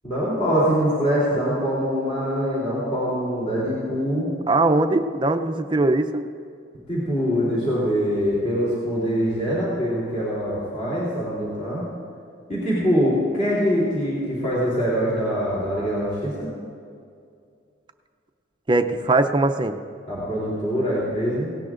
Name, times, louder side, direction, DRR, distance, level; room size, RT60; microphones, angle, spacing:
voice 1, 0.0-4.3 6.9-11.8 12.5-16.5 20.1-21.5, equal, 35° left, -8 dB, 3.3 m, -23 dB
voice 2, 4.5-6.2 18.7-19.8, right 2 dB, 25° right, 7 dB, 0.5 m, -20 dB
18.0 x 17.5 x 2.5 m, 2.3 s
head